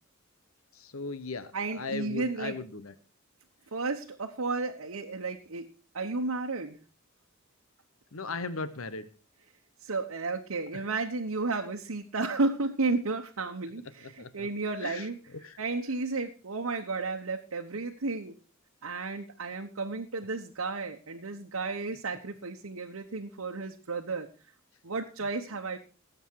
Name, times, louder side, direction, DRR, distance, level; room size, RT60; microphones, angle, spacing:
voice 1, 0.8-2.9 8.1-9.0 14.2-14.5 14.8-15.0 15.4-15.6, left 4 dB, 85° left, 13 dB, 1.1 m, -37 dB
voice 2, 1.5-2.6 3.7-5.7 5.9-6.8 9.8-15.2 15.6-18.3 18.8-24.3 24.8-25.8, right 3 dB, 80° right, 2 dB, 1.1 m, -33 dB
18.5 x 8.0 x 4.7 m, 0.37 s
head